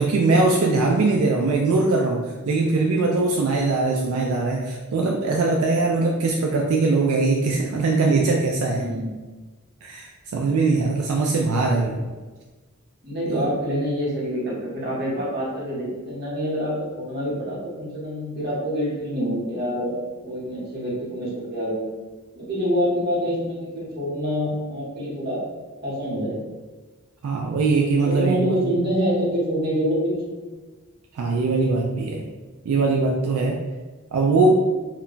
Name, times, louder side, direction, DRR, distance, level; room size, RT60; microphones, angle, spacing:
voice 1, 0.0-8.8 9.8-12.0 13.3-13.5 27.2-28.6 31.1-32.2 32.6-33.6 34.1-34.5, right 3 dB, 80° right, -1 dB, 0.3 m, -21 dB
voice 2, 8.7-9.1 13.0-19.9 20.2-21.9 22.3-25.4 25.8-26.5 28.0-30.5, equal, 50° right, -7 dB, 1.0 m, -26 dB
2.2 x 2.1 x 3.7 m, 1.3 s
head